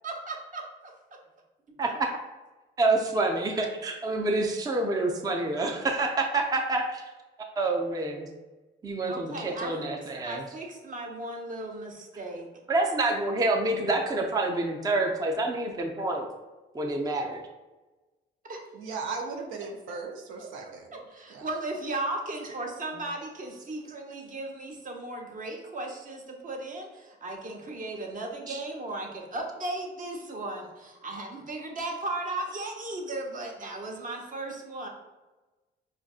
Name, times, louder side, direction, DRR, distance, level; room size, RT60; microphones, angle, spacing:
voice 1, 0.0-0.9 9.0-12.5 18.4-18.6 20.4-34.9, right 2 dB, 40° right, 1 dB, 0.8 m, -36 dB
voice 2, 1.8-2.1 2.8-7.0 7.6-8.3 8.8-10.4 12.7-16.3 16.7-17.4 28.5-28.6, right 2 dB, 20° right, 2 dB, 0.5 m, -27 dB
voice 3, 18.7-20.9 21.3-21.5, right 4 dB, 85° right, 2 dB, 0.5 m, -37 dB
5.2 x 2.5 x 2.4 m, 1.1 s
cardioid pair, 90°, 20 cm